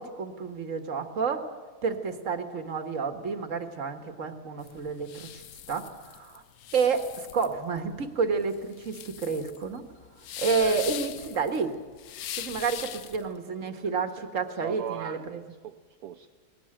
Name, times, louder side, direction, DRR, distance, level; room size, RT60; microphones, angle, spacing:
voice 1, 0.0-1.5 1.8-5.4 5.7-6.4 6.7-9.8 10.4-11.7 12.4-15.4, right 5 dB, 55° right, 7 dB, 1.9 m, -30 dB
sound 1, 4.6-13.3, left 10 dB, 70° left, 1.2 m, -40 dB
voice 2, 13.2-13.8 14.1-14.3 14.6-16.3, right 10 dB, 75° right, 6 dB, 1.3 m, -40 dB
20.0 x 17.5 x 8.8 m, 1.5 s
omnidirectional pair, 1.7 m